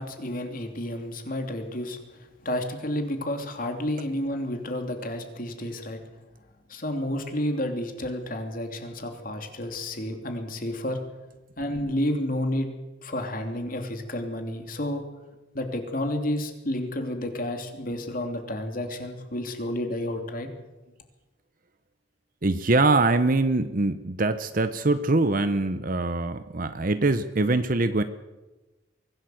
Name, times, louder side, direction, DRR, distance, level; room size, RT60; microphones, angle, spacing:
voice 1, 0.0-6.0 6.7-11.0 11.6-12.7 13.0-15.0 15.5-20.5, left 1 dB, 45° left, 5 dB, 3.1 m, -31 dB
voice 2, 22.4-28.0, right 2 dB, 45° right, 11 dB, 0.9 m, -23 dB
24.0 x 16.5 x 7.9 m, 1.1 s
head